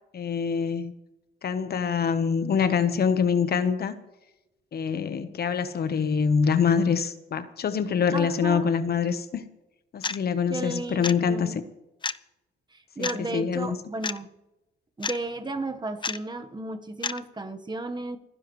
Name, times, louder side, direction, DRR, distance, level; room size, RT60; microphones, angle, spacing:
voice 1, 0.1-0.9 1.4-3.9 4.7-9.5 9.9-11.6 13.0-13.8, left 6 dB, 50° left, 11 dB, 1.2 m, -25 dB
voice 2, 8.1-8.7 10.5-11.6 12.7-14.3 15.0-18.2, right 2 dB, 20° right, 7 dB, 1.3 m, -33 dB
sound 1, 10.0-10.2 11.0-11.2 12.0-12.2 13.0-13.2 14.0-14.2 15.0-15.2 16.0-16.2 17.0-17.2, left 5 dB, 25° left, 0.5 m, -29 dB
29.0 x 10.5 x 3.2 m, 0.93 s
cardioid pair, 90°, 20 cm